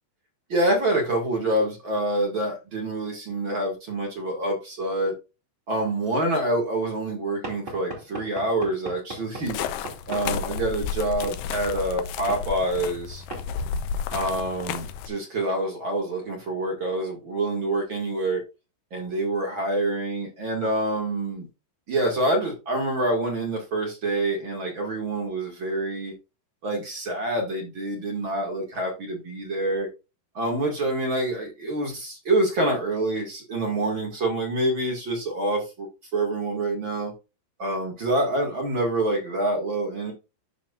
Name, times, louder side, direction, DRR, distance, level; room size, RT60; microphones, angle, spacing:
voice 1, 0.5-5.1 5.7-9.6 10.1-13.2 14.1-18.4 18.9-21.5 21.9-26.1 26.6-29.9 30.3-35.9 36.1-37.1 37.6-40.1, right 1 dB, 45° right, 0 dB, 1.7 m, -26 dB
Knock / Wood, 7.4-10.3 11.2-11.4 12.3-12.5 13.3-13.5, right 1 dB, 15° right, 2.0 m, -37 dB
sound 1, 9.4-15.1, left 7 dB, 85° left, 2.0 m, -32 dB
13.0 x 4.4 x 2.4 m, 0.28 s
omnidirectional pair, 5.0 m